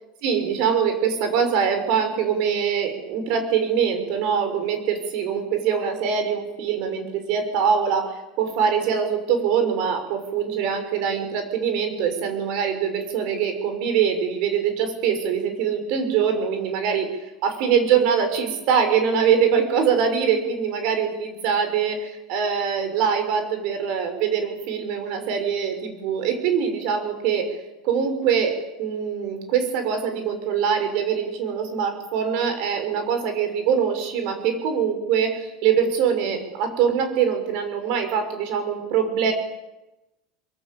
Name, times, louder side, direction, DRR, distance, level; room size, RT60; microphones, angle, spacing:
voice 1, 0.2-39.3, right 7 dB, 60° right, 7 dB, 6.1 m, -23 dB
23.5 x 22.5 x 8.7 m, 1.0 s
supercardioid pair, 145°, 0 cm